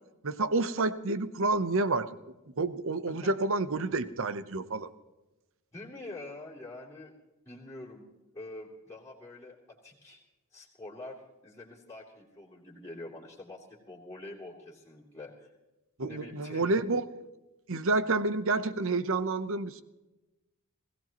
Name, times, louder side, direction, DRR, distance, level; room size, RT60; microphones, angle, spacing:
voice 1, 0.2-2.1 2.6-4.9 16.0-17.0 17.7-19.8, right 3 dB, 65° right, 13 dB, 0.9 m, -29 dB
voice 2, 5.7-7.1 7.4-8.1 8.3-10.2 10.5-15.5 16.1-16.8, left 2 dB, 15° left, -6 dB, 3.4 m, -46 dB
20.5 x 17.0 x 3.0 m, 1.0 s
head